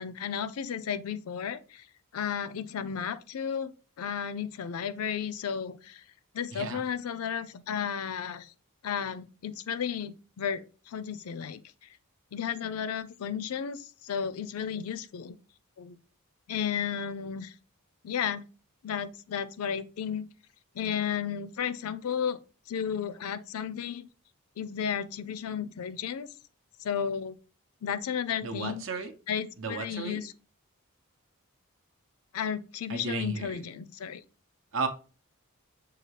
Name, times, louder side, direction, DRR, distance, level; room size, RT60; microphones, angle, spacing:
voice 1, 0.0-1.8 2.1-3.7 4.0-6.0 6.3-8.5 8.8-11.6 12.3-15.4 15.8-16.0 16.5-17.5 18.0-18.4 18.8-20.3 20.8-22.4 22.7-24.1 24.6-26.3 26.8-27.4 27.8-28.8 29.3-30.3 32.3-34.2, left 8 dB, 80° left, 0.4 m, -33 dB
voice 2, 6.5-6.8 28.4-29.1 29.6-30.2 32.9-33.6 34.7-34.9, right 4 dB, 60° right, 0.7 m, -34 dB
6.4 x 2.3 x 3.2 m
head